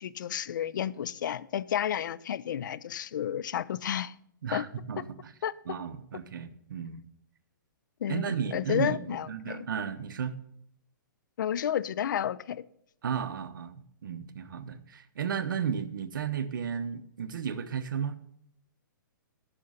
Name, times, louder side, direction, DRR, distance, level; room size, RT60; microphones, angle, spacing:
voice 1, 0.0-4.1 4.5-4.6 5.4-5.5 8.0-9.7 11.4-12.6, left 10 dB, 65° left, 0.5 m, -31 dB
voice 2, 4.4-5.3 5.7-7.0 8.1-10.4 13.0-18.2, right 7 dB, 75° right, 1.0 m, -34 dB
10.0 x 6.4 x 5.6 m
hypercardioid pair, 150°, 11 cm